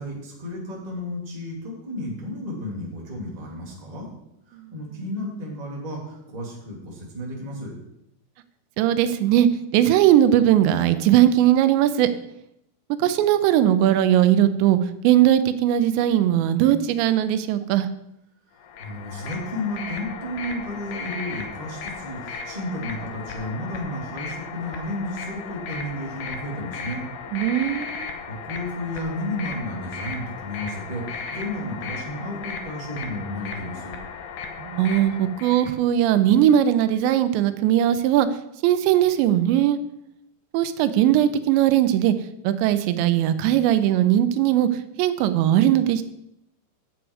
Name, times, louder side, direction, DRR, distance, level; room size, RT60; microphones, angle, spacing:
voice 1, 0.0-4.1 4.5-7.7 18.8-27.0 28.3-33.9, left 1 dB, 15° right, -3 dB, 1.8 m, -32 dB
voice 2, 8.8-9.5 9.7-12.1 13.0-14.8 15.0-17.9 27.3-28.1 34.6-38.3 38.6-39.8 40.5-42.1 42.4-44.7 45.0-46.0, right 11 dB, 85° right, 11 dB, 2.9 m, -19 dB
sound 1, 18.6-35.7, left 5 dB, 75° left, 1.8 m, -36 dB
10.5 x 7.8 x 4.7 m, 0.81 s
omnidirectional pair, 5.0 m